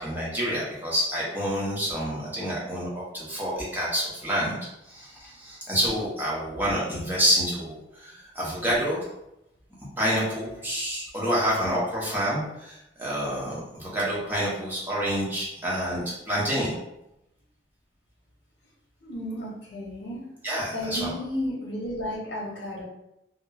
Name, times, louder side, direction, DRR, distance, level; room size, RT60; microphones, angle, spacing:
voice 1, 0.0-2.9 3.1-4.6 4.9-9.1 10.0-16.8 20.4-21.1, equal, 10° right, -6 dB, 0.7 m, -28 dB
voice 2, 19.0-20.2 20.7-22.8, left 1 dB, 65° left, -5 dB, 0.8 m, -33 dB
2.9 x 2.0 x 2.3 m, 0.86 s
head